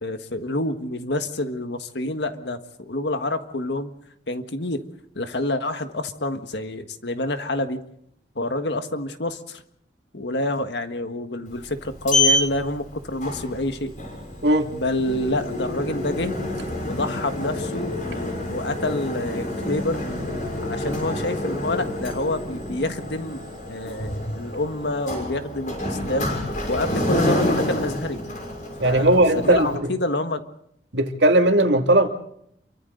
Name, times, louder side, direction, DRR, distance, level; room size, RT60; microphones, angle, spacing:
voice 1, 0.0-3.9 4.3-4.8 5.1-7.8 8.3-9.6 10.1-13.9 14.7-16.3 16.8-20.0 20.6-26.3 26.7-28.3 28.8-30.4, left 1 dB, 75° left, 8 dB, 1.6 m, -28 dB
Sliding door, 11.5-29.8, left 1 dB, 45° left, 6.4 m, -28 dB
voice 2, 28.8-29.7 30.9-32.1, right 1 dB, 80° right, 4 dB, 2.4 m, -17 dB
28.5 x 24.0 x 3.9 m, 0.70 s
head